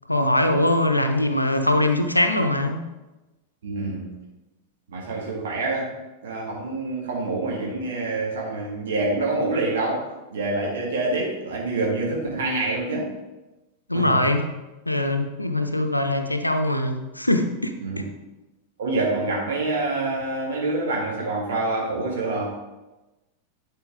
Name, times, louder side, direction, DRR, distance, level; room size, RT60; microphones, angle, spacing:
voice 1, 0.1-2.8 13.9-14.5 14.9-18.1, left 1 dB, 85° left, 6 dB, 0.6 m, -22 dB
voice 2, 3.6-4.2 4.9-13.1 13.9-14.2 17.8-18.0 18.8-22.6, right 2 dB, 60° right, -3 dB, 1.9 m, -26 dB
11.0 x 4.5 x 3.6 m, 1.1 s
figure-of-eight pair, 90°, 0 cm